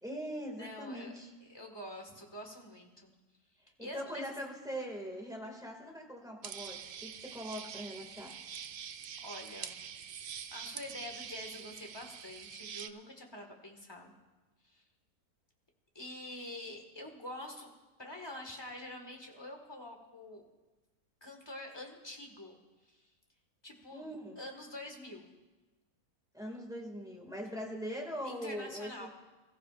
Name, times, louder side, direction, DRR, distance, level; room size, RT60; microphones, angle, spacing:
voice 1, 0.0-1.3 3.8-8.3 23.9-24.4 26.3-29.1, equal, ahead, 0 dB, 2.1 m, -41 dB
voice 2, 0.6-1.2 1.4-3.1 3.8-4.2 9.2-9.8 10.5-14.1 14.6-14.8 15.9-17.7 18.0-20.5 21.2-22.5 22.8-23.1 23.6-24.1 24.4-25.3 28.2-29.1, left 1 dB, 15° left, 1 dB, 1.7 m, -46 dB
sound 1, 6.4-12.9, right 8 dB, 85° right, 0.4 m, -45 dB
26.0 x 14.5 x 2.5 m, 1.2 s
omnidirectional pair, 1.6 m